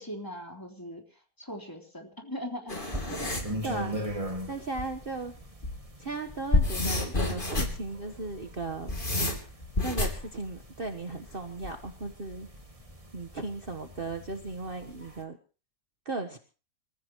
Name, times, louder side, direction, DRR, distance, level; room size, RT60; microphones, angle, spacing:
voice 1, 0.0-3.6, equal, 15° left, 1 dB, 3.7 m, -41 dB
sound 1, 2.7-3.5 4.8-4.9 5.4-5.8 6.3-7.8 8.6-10.2 11.6-12.1, left 2 dB, 35° left, 3.3 m, -29 dB
sound 2, 2.9-15.2, equal, 25° right, 2.2 m, -41 dB
voice 2, 3.6-4.0 4.5-5.3 6.0-9.0 9.8-12.5 13.1-15.4 16.0-16.4, right 3 dB, 40° right, 5 dB, 1.4 m, -36 dB
28.0 x 15.0 x 3.1 m, 0.37 s
omnidirectional pair, 1.6 m